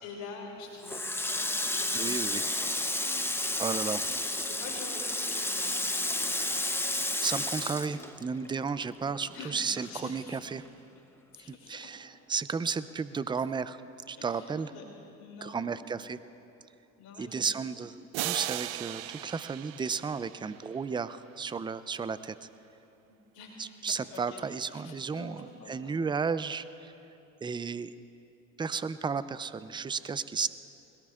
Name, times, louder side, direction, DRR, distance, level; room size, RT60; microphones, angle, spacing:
voice 1, 0.0-3.0 4.4-6.4 9.3-10.4 11.3-11.9 14.2-14.8 15.2-15.7 17.0-17.7 23.1-23.8 24.1-25.9, left 3 dB, 65° left, -1 dB, 2.8 m, -46 dB
Water tap faucet, 0.8-8.7 9.0-10.3, left 1 dB, 5° left, 0.8 m, -31 dB
voice 2, 1.9-2.4 3.6-4.0 7.2-10.6 11.5-13.8 14.1-14.7 15.4-16.2 17.2-17.9 18.2-22.4 23.6-26.9 27.4-27.9 28.6-30.5, right 5 dB, 15° right, 14 dB, 0.4 m, -33 dB
sound 1, 18.1-21.0, right 15 dB, 85° right, 0.5 m, -37 dB
21.5 x 17.5 x 2.4 m, 2.8 s
hypercardioid pair, 70°, 39 cm